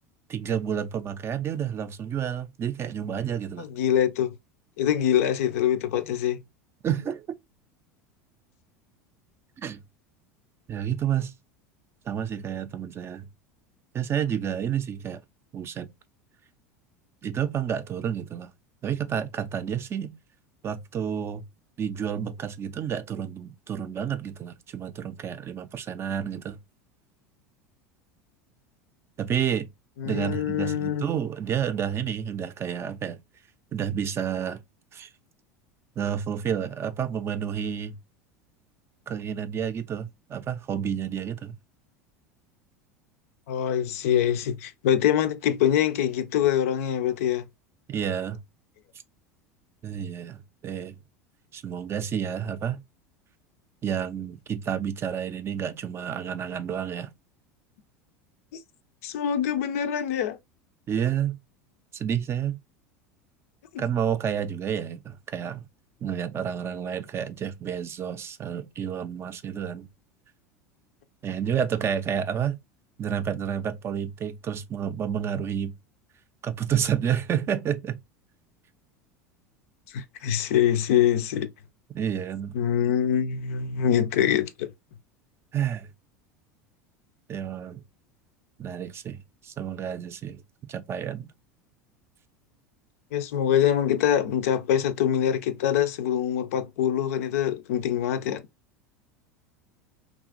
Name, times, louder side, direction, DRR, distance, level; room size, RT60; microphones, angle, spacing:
voice 1, 0.3-3.7 6.8-7.4 9.6-9.8 10.7-11.3 12.1-13.3 13.9-15.2 15.5-15.9 17.2-18.5 18.8-20.1 20.6-21.4 21.8-26.6 29.2-29.7 30.0-33.2 33.7-34.6 34.9-35.1 36.0-38.0 39.1-41.5 47.9-48.4 49.8-51.0 51.5-52.8 53.8-57.1 60.9-61.4 61.9-62.6 63.8-65.7 66.0-69.9 71.2-72.6 73.0-75.7 76.4-78.0 81.9-82.5 85.5-85.9 87.3-87.8 88.6-90.4 90.7-91.3, right 8 dB, 30° right, 0.4 m, -30 dB
voice 2, 3.6-4.3 4.8-6.4 30.0-31.1 43.5-47.5 59.0-60.4 63.7-63.8 79.9-81.5 82.5-84.7 93.1-98.4, left 10 dB, 65° left, 0.4 m, -24 dB
3.0 x 2.4 x 2.4 m
hypercardioid pair, 80°, 8 cm